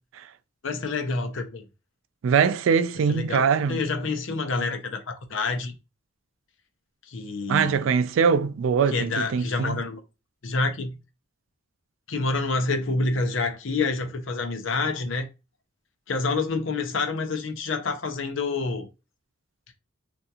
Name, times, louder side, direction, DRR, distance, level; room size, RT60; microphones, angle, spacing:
voice 1, 0.6-1.7 3.1-5.7 7.1-7.9 8.9-10.0 10.4-11.0 12.1-15.3 16.1-18.9, left 3 dB, 75° left, 0.7 m, -28 dB
voice 2, 2.2-3.8 7.5-9.8, right 6 dB, 80° right, 0.3 m, -22 dB
3.4 x 2.5 x 2.7 m
head